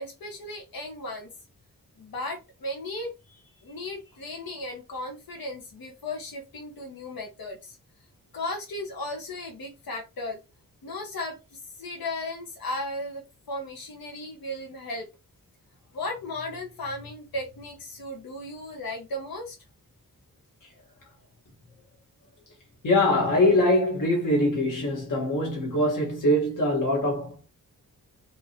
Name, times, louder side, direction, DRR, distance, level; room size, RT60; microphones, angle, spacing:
voice 1, 0.0-1.3 2.0-3.1 3.6-7.8 8.3-10.4 10.8-15.1 15.9-19.6, left 1 dB, 80° left, 1.5 m, -36 dB
voice 2, 22.8-27.5, left 1 dB, 65° left, 1.7 m, -23 dB
4.3 x 3.0 x 2.9 m
wide cardioid pair, 180°, 34 cm